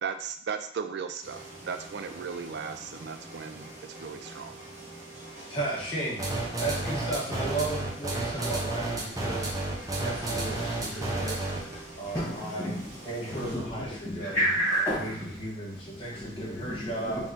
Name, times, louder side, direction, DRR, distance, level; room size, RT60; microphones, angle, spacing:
voice 1, 0.0-4.5, right 6 dB, 60° right, 8 dB, 0.4 m, -36 dB
sound 1, 1.2-13.6, right 1 dB, 40° right, 1.2 m, -46 dB
voice 2, 5.5-9.6 10.0-11.4 12.0-12.7 13.1-14.4 14.9-17.2, right 2 dB, 30° left, -5 dB, 1.4 m, -35 dB
sound 2, 6.2-11.7, right 2 dB, 20° right, 0.7 m, -31 dB
sound 3, 6.4-12.4, left 1 dB, 55° left, 1.5 m, -49 dB
voice 3, 12.1-17.3, equal, 10° left, -12 dB, 1.3 m, -32 dB
4.0 x 3.0 x 3.8 m, 0.62 s
head